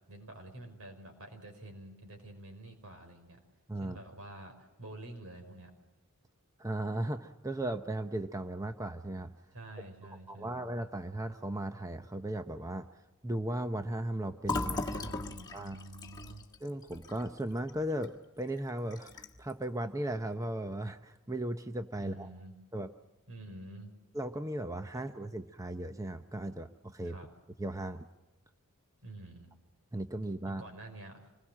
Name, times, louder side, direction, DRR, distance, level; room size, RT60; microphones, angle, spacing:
voice 1, 0.1-3.4 3.8-5.7 9.5-10.7 14.6-16.5 22.0-22.6 23.3-23.9 24.9-25.3 27.0-27.3 29.0-29.5 30.5-31.2, right 2 dB, 70° right, 5 dB, 5.4 m, -48 dB
voice 2, 6.6-9.3 10.3-12.9 13.2-14.8 15.5-15.8 16.6-22.3 22.7-22.9 24.1-27.2 27.6-28.1 29.9-30.6, right 1 dB, 15° right, 8 dB, 0.7 m, -36 dB
Fill (with liquid), 14.4-18.1 18.4-18.6 18.9-19.5, left 3 dB, 20° left, 1.7 m, -38 dB
26.0 x 21.0 x 7.5 m, 1.1 s
head